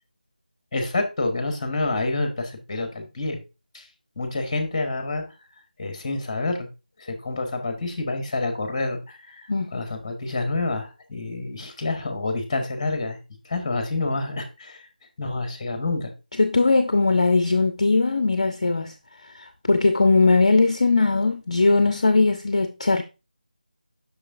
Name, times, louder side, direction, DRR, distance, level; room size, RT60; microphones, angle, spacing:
voice 1, 0.7-3.4 3.7-3.9 4.2-5.2 5.8-6.7 7.0-13.2 13.4-14.9 15.2-16.1, left 2 dB, 20° left, 1.1 m, -28 dB
voice 2, 16.4-18.9 19.2-23.0, left 3 dB, 40° left, 0.5 m, -20 dB
6.6 x 6.0 x 2.5 m
figure-of-eight pair, 165°, 5 cm